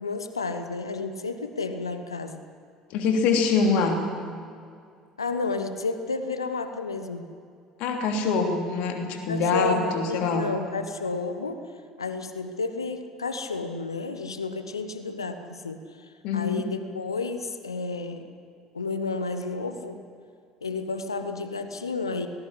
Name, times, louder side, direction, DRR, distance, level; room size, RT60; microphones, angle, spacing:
voice 1, 0.0-2.4 5.2-7.2 9.3-11.7 12.0-18.3 18.7-20.0 20.6-22.3, left 3 dB, 80° left, 9 dB, 1.2 m, -31 dB
voice 2, 2.9-4.0 7.8-10.5 16.2-16.6, left 4 dB, 55° left, 4 dB, 3.0 m, -24 dB
18.5 x 17.5 x 9.9 m, 2.3 s
figure-of-eight pair, 60°, 2 cm